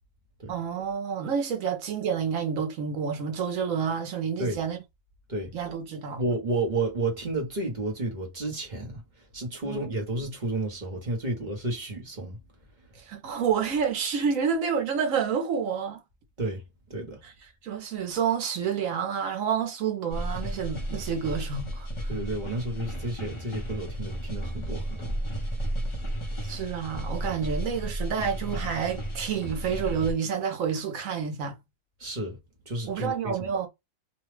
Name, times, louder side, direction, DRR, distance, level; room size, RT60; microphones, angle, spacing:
voice 1, 0.5-4.8 5.5-6.2 9.6-9.9 13.0-16.0 17.2-17.3 17.6-22.2 26.4-31.6 32.9-33.7, right 7 dB, 70° right, 1.3 m, -29 dB
voice 2, 6.2-9.0 9.3-12.4 16.4-16.6 16.9-17.2 22.1-25.0 32.0-32.4 32.7-33.4, right 2 dB, 35° right, 1.0 m, -31 dB
sound 1, 20.1-30.1, right 1 dB, 25° left, 0.8 m, -33 dB
3.0 x 2.3 x 3.2 m
omnidirectional pair, 1.5 m